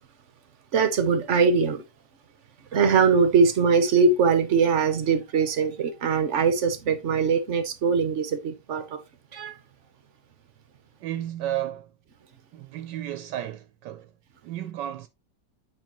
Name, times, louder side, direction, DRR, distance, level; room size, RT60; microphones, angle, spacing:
voice 1, 0.7-1.8 2.7-9.0 9.3-9.5, right 5 dB, 50° right, 1.0 m, -22 dB
voice 2, 11.0-11.9 12.5-14.1 14.4-15.1, right 12 dB, 75° right, 1.2 m, -33 dB
8.9 x 4.5 x 3.0 m
omnidirectional pair, 1.9 m